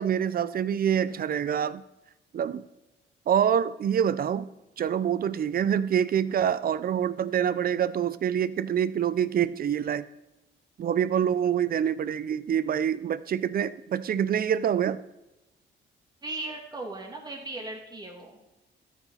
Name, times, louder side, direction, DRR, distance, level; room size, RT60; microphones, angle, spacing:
voice 1, 0.0-1.8 2.3-2.6 3.3-4.5 4.8-10.0 10.8-15.0, right 9 dB, 50° right, 16 dB, 0.6 m, -26 dB
voice 2, 16.2-18.4, right 2 dB, 20° right, 0 dB, 2.7 m, -37 dB
13.0 x 6.0 x 4.2 m, 0.98 s
cardioid pair, 90°, 20 cm